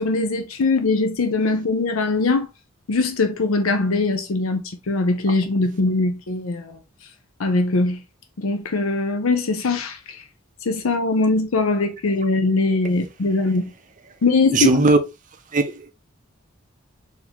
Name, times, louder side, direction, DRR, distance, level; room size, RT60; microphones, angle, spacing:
voice 1, 0.0-2.5 2.9-6.8 7.4-8.0 8.4-10.2 10.6-13.7 14.2-14.7, left 3 dB, 75° left, 0.6 m, -21 dB
voice 2, 14.5-15.0 15.5-15.9, right 2 dB, 35° right, 0.6 m, -18 dB
4.1 x 2.8 x 2.8 m
head